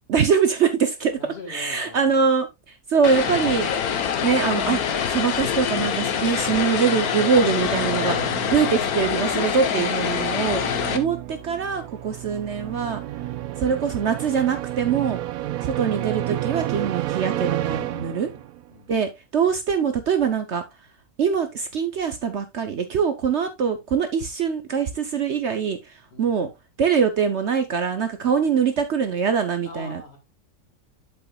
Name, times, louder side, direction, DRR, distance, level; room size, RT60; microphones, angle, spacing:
voice 1, 0.1-1.2 1.5-3.7 4.2-4.8 5.1-10.6 10.9-13.0 13.6-15.2 15.6-18.3 18.9-20.6 21.2-26.5 26.8-30.0, right 6 dB, 55° right, 1.0 m, -23 dB
voice 2, 1.2-2.3 13.1-13.3 15.4-15.6 17.6-18.9 26.1-26.4 28.3-28.4 29.7-30.2, left 2 dB, 45° left, 2.1 m, -44 dB
Vehicle, 3.0-11.0, left 7 dB, 75° left, 1.4 m, -25 dB
sound 1, 6.0-18.7, right 14 dB, 80° right, 1.1 m, -32 dB
8.3 x 7.1 x 2.3 m
omnidirectional pair, 1.6 m